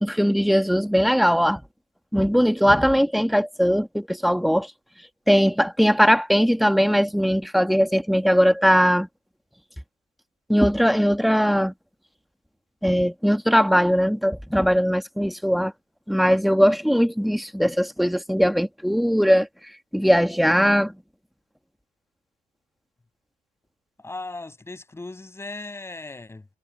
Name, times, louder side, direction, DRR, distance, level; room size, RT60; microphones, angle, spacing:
voice 1, 0.0-1.6 2.1-4.7 5.3-9.1 10.5-11.7 12.8-15.7 16.1-19.5 19.9-20.9, equal, ahead, 1.4 m, -20 dB
voice 2, 24.0-26.5, left 2 dB, 15° left, 6.4 m, -37 dB
cardioid pair, 110°, 17 cm